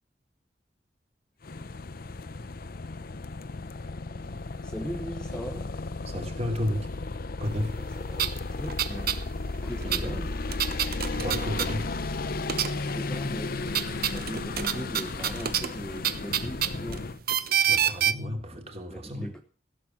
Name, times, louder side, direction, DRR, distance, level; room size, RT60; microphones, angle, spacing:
sound 1, 1.4-17.2, left 3 dB, 55° left, 0.8 m, -34 dB
voice 1, 4.6-5.7 7.8-9.2 9.6-10.3 12.7-17.0 18.9-19.4, equal, 5° left, 1.0 m, -39 dB
voice 2, 6.0-6.9 7.4-7.7 9.7-10.2 10.7-11.9 17.7-19.3, equal, 35° right, 3.1 m, -33 dB
sound 2, 7.8-7.9 8.1-9.2 9.5-12.2 12.4-13.1 13.4-18.1, right 9 dB, 60° right, 1.0 m, -28 dB
16.0 x 7.6 x 7.4 m
head